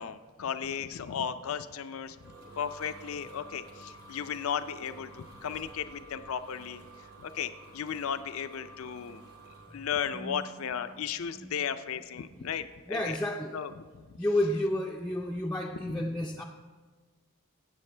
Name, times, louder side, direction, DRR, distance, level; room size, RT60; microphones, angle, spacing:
voice 1, 0.0-6.8 7.2-9.2 9.7-13.2 13.5-13.9 15.8-16.1, left 7 dB, 70° left, 11 dB, 0.4 m, -35 dB
sound 1, 1.8-9.7, right 1 dB, 85° right, 2.1 m, -51 dB
voice 2, 10.1-10.4 11.4-11.6 12.4-12.5 12.9-13.6 14.2-16.4, left 1 dB, 5° left, -1 dB, 0.3 m, -31 dB
15.5 x 8.0 x 3.3 m, 1.4 s
head